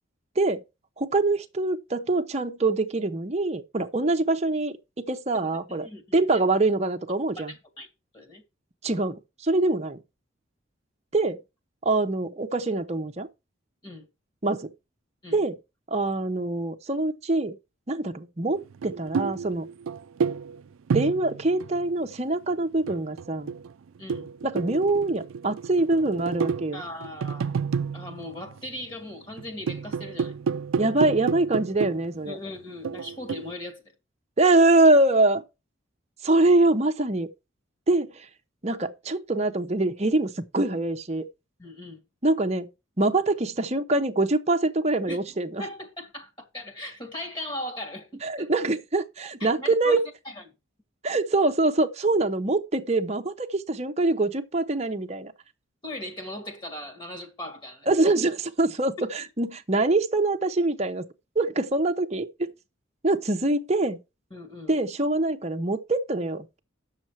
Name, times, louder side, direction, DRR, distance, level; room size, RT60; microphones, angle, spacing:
voice 1, 1.0-5.9 6.1-7.5 8.8-10.0 11.1-11.4 11.8-13.3 14.4-14.7 15.3-15.6 15.9-17.6 17.9-19.7 20.9-23.5 24.4-26.8 30.8-32.4 34.4-35.4 36.2-37.3 37.9-38.3 38.6-41.3 42.2-42.7 43.0-45.6 48.2-50.0 51.0-55.3 57.9-61.1 61.4-62.5 63.0-64.0 64.7-66.6, right 2 dB, 30° right, 0.9 m, -24 dB
voice 2, 5.4-6.4 7.4-7.9 8.1-8.4 13.8-14.1 15.2-15.4 24.0-24.3 26.7-27.6 27.9-30.3 32.3-33.8 41.6-42.0 45.1-45.2 45.6-48.5 49.4-50.4 55.8-57.9 64.3-64.8, left 1 dB, 25° left, 1.9 m, -38 dB
sound 1, 18.7-22.2 22.7-28.9 29.3-32.3 32.8-33.5, right 6 dB, 80° right, 0.4 m, -31 dB
8.8 x 6.6 x 4.6 m
head